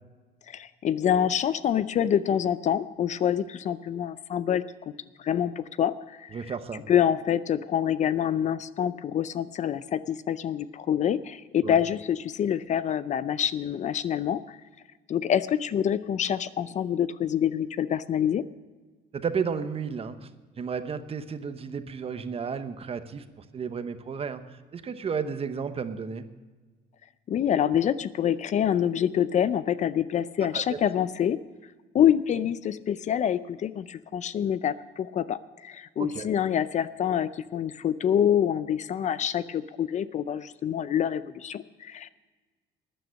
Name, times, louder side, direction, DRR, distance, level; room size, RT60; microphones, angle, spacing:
voice 1, 0.5-4.6 5.2-6.5 6.9-14.6 15.1-18.4 27.3-31.4 31.9-42.1, left 9 dB, 45° left, 15 dB, 0.5 m, -26 dB
voice 2, 6.3-6.8 11.6-11.8 19.1-20.3 20.6-26.3 30.5-30.8 36.0-36.3, right 6 dB, 35° right, 10 dB, 0.9 m, -33 dB
14.0 x 10.0 x 6.3 m, 1.3 s
cardioid pair, 110°, 17 cm